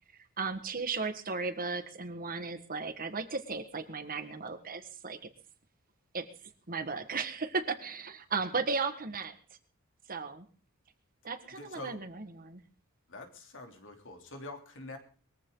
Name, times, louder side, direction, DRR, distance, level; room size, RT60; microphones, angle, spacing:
voice 1, 0.4-5.2 6.1-6.2 6.7-9.3 10.1-10.5 11.2-12.6, right 4 dB, 40° right, 8 dB, 1.7 m, -35 dB
voice 2, 11.4-12.0 13.1-15.0, left 2 dB, 60° left, 4 dB, 3.1 m, -45 dB
21.5 x 15.0 x 3.9 m, 0.39 s
head